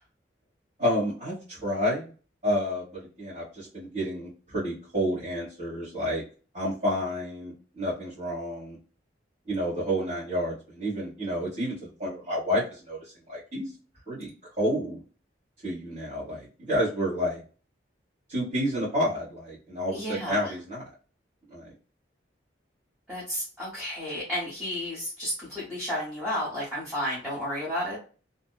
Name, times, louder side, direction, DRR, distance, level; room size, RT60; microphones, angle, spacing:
voice 1, 0.8-2.1 2.4-6.2 6.5-8.8 9.5-13.7 14.1-15.0 15.6-17.4 18.3-20.8 21.5-21.7, equal, 45° right, -12 dB, 1.2 m, -30 dB
voice 2, 19.9-20.5 23.1-28.0, equal, 10° right, -9 dB, 0.9 m, -32 dB
2.6 x 2.1 x 2.3 m, 0.37 s
head